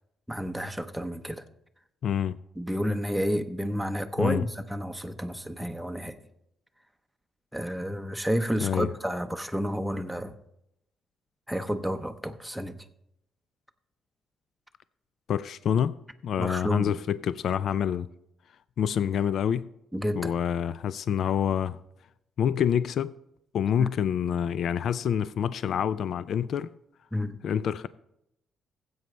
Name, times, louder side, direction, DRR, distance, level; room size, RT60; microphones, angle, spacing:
voice 1, 0.3-1.4 2.6-6.2 7.5-10.3 11.5-12.9 16.4-17.0 19.9-20.3 23.8-23.9 27.1-27.4, equal, ahead, 0.7 m, -30 dB
voice 2, 2.0-2.4 4.2-4.4 8.6-8.9 15.3-15.9 16.2-18.1 18.8-19.7 20.2-21.8 22.4-23.1 23.5-26.7 27.4-27.9, left 8 dB, 65° left, 0.3 m, -27 dB
15.5 x 7.9 x 3.2 m
cardioid pair, 90°, 0 cm